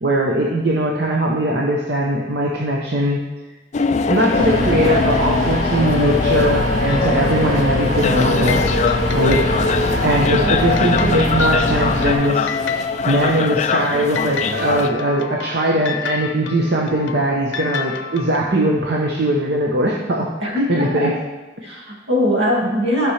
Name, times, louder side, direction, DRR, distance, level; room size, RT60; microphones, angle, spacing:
voice 1, 0.0-3.2 4.1-8.7 9.1-9.7 10.0-12.5 13.1-20.3 20.7-21.1 22.6-22.7, right 1 dB, 55° right, -2 dB, 0.8 m, -20 dB
sound 1, 3.7-14.9, left 4 dB, 35° left, 0.3 m, -22 dB
sound 2, 4.3-12.1, left 1 dB, 40° right, 1.8 m, -22 dB
sound 3, 6.9-7.8 8.4-18.4, left 5 dB, 70° left, 0.6 m, -30 dB
voice 2, 10.3-10.7 20.4-21.2 21.6-23.1, left 1 dB, 70° right, -3 dB, 2.1 m, -21 dB
11.5 x 6.0 x 3.3 m, 1.2 s
head